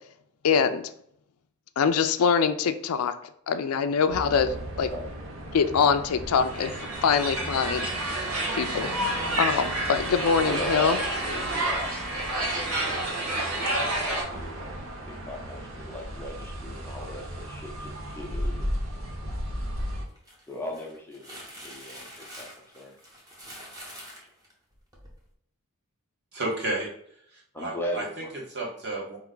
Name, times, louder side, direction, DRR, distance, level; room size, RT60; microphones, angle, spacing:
voice 1, 0.4-0.9 1.8-3.1 3.5-4.9 5.5-6.7 7.0-7.9 8.2-8.3 8.5-11.0, left 6 dB, 80° left, 10 dB, 0.4 m, -24 dB
sound 1, 4.1-20.1, right 1 dB, 70° right, 1.0 m, -36 dB
sound 2, 6.4-14.2, right 1 dB, 90° right, 1.4 m, -29 dB
voice 2, 10.4-18.7 20.5-22.1 22.4-22.5 22.7-23.0 27.5-28.3 28.6-28.7, left 1 dB, 10° left, -1 dB, 0.7 m, -38 dB
sound 3, 20.1-25.2, equal, 15° right, 0.9 m, -46 dB
voice 3, 26.3-26.9 27.3-28.2 28.5-29.2, right 2 dB, 50° right, -2 dB, 1.2 m, -32 dB
4.5 x 3.0 x 3.8 m, 0.68 s
head